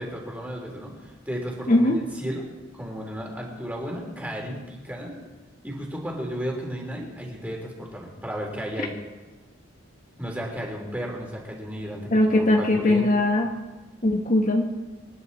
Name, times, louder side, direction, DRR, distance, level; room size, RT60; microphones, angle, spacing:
voice 1, 0.0-1.9 2.2-2.4 2.7-5.1 5.6-8.9 10.2-13.0, equal, 10° right, -1 dB, 3.5 m, -34 dB
voice 2, 1.7-2.0 12.1-13.5 14.0-14.7, left 1 dB, 40° left, 2 dB, 1.4 m, -20 dB
27.0 x 11.0 x 4.2 m, 1.2 s
head